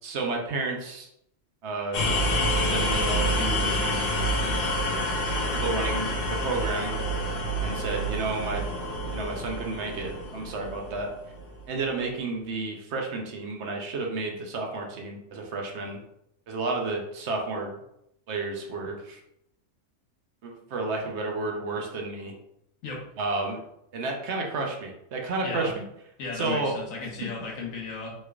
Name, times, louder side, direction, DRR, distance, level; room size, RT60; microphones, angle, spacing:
voice 1, 0.0-1.1 1.6-2.1 2.7-4.0 5.5-6.9 7.6-8.7 9.1-11.1 11.7-16.0 16.5-17.8 18.3-19.2 20.4-22.3 23.2-23.6 23.9-25.8 26.3-26.7, right 3 dB, 65° right, 1 dB, 0.8 m, -31 dB
sound 1, 1.9-11.7, equal, 55° left, 0.7 m, -28 dB
voice 2, 26.2-28.1, left 4 dB, 90° left, -2 dB, 1.3 m, -35 dB
3.1 x 3.1 x 2.3 m, 0.79 s
omnidirectional pair, 1.3 m